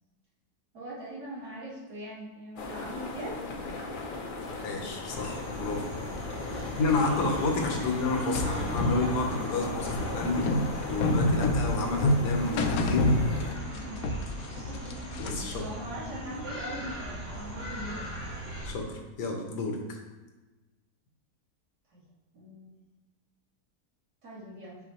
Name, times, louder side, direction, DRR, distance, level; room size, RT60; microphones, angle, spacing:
voice 1, 0.7-3.4 6.5-7.1 7.8-7.9 13.7-14.1 14.7-15.0 15.5-18.1 21.9-22.0 22.3-22.7 24.2-24.8, right 1 dB, 70° right, -7 dB, 2.4 m, -42 dB
sound 1, 2.6-13.5, left 3 dB, 55° left, 0.6 m, -38 dB
voice 2, 4.6-5.8 6.7-10.5 10.9-13.1 15.2-15.6 18.6-20.0, left 3 dB, 85° left, 2 dB, 1.5 m, -30 dB
sound 2, 5.0-18.7, equal, 85° right, 2.3 m, -39 dB
sound 3, 8.3-13.8 14.0-15.6, left 1 dB, 70° left, 0.9 m, -27 dB
5.9 x 5.6 x 3.0 m, 1.2 s
omnidirectional pair, 1.7 m